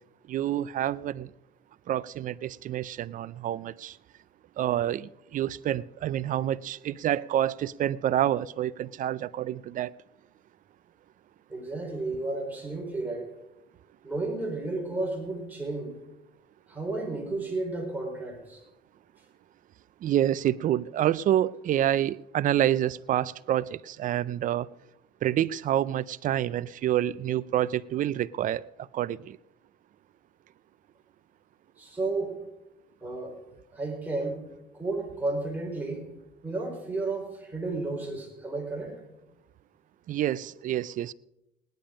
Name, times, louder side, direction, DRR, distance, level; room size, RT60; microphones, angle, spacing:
voice 1, 0.3-1.3 1.9-4.0 4.6-9.9 20.0-24.7 25.2-28.6 28.9-29.4 40.1-41.1, right 12 dB, 50° right, 0.5 m, -28 dB
voice 2, 11.5-13.3 14.0-15.9 16.7-18.6 31.8-32.4 33.0-33.4 33.7-34.5 34.7-36.1 36.4-39.0, right 2 dB, 10° right, 4.5 m, -32 dB
17.5 x 10.5 x 5.1 m
cardioid pair, 110°, 17 cm